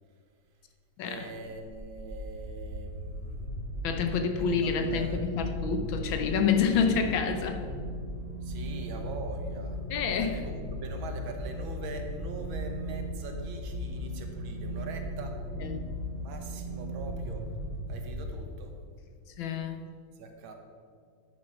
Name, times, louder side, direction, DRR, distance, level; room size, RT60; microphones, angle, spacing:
voice 1, 1.1-3.5 4.5-5.4 8.4-9.8 10.2-15.5 16.2-17.6 17.9-18.8 20.2-20.5, right 4 dB, 75° right, 4 dB, 1.8 m, -43 dB
sound 1, 1.4-18.8, equal, 20° right, 1.6 m, -37 dB
voice 2, 3.8-7.7 9.9-10.4 15.6-15.9 19.4-19.8, left 6 dB, 75° left, 6 dB, 1.5 m, -28 dB
10.0 x 6.3 x 5.7 m, 2.1 s
omnidirectional pair, 2.2 m